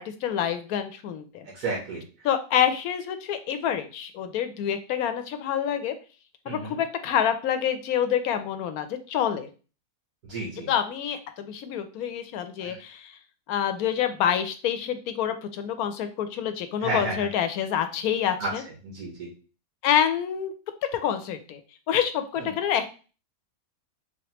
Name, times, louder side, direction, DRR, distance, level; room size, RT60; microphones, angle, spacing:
voice 1, 0.0-1.5 2.2-5.9 6.5-9.5 10.6-13.1 13.5-18.6 19.8-20.5 20.9-21.6 21.9-22.9, left 9 dB, 75° left, 9 dB, 1.0 m, -27 dB
voice 2, 1.4-2.0 6.5-6.8 10.3-10.7 12.6-12.8 16.8-17.1 18.4-18.5 18.8-19.3 22.4-22.5, right 3 dB, 75° right, -3 dB, 1.7 m, -32 dB
4.1 x 3.2 x 2.9 m, 0.35 s
omnidirectional pair, 1.6 m